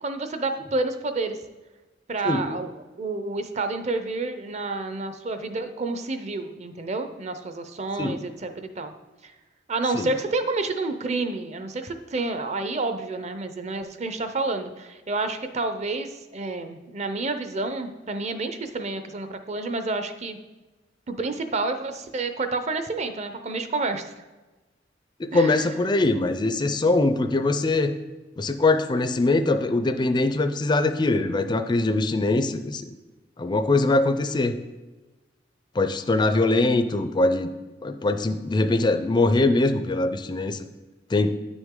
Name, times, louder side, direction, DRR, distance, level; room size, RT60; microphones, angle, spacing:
voice 1, 0.0-1.4 2.1-8.9 9.2-9.3 9.7-20.4 21.1-24.1 25.3-25.7, right 3 dB, 35° right, 8 dB, 0.6 m, -29 dB
voice 2, 2.2-2.6 8.0-8.2 9.9-10.1 25.2-27.9 28.4-32.9 33.4-34.6 35.7-37.5 37.8-40.6 41.1-41.3, left 2 dB, 25° left, 9 dB, 0.4 m, -22 dB
9.7 x 6.1 x 3.7 m, 1.2 s
head